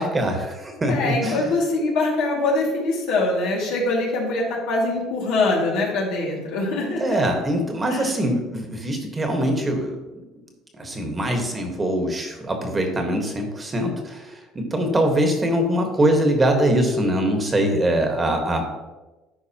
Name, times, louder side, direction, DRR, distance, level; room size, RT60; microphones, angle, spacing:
voice 1, 0.0-1.4 7.0-9.9 10.8-18.6, right 1 dB, 20° right, 3 dB, 1.4 m, -23 dB
voice 2, 0.9-7.0 7.9-8.1, left 2 dB, 80° left, -2 dB, 2.2 m, -23 dB
11.0 x 4.6 x 2.9 m, 1.1 s
supercardioid pair, 100°, 0 cm